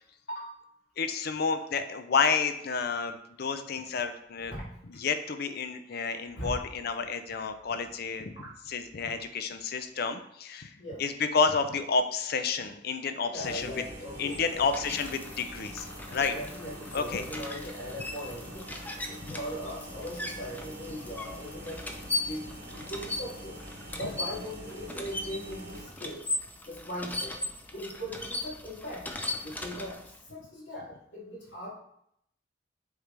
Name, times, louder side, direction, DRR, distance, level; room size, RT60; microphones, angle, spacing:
voice 1, 1.0-4.5 5.0-8.3 8.7-13.8 14.2-16.3 16.9-17.2 19.2-19.3 24.0-24.1, left 5 dB, 60° left, 9 dB, 0.5 m, -30 dB
voice 2, 4.5-4.8 6.3-6.6 8.3-8.5 10.8-11.1 13.3-15.0 16.1-18.8 19.1-23.6 24.0-26.2 26.6-27.4 27.7-29.1 29.4-30.0 30.3-31.7, equal, 90° left, -5 dB, 2.2 m, -40 dB
sound 1, 13.4-25.9, right 1 dB, 30° right, 2.0 m, -45 dB
sound 2, 14.0-30.3, left 2 dB, 10° left, 0.5 m, -39 dB
7.9 x 3.7 x 3.3 m, 0.74 s
head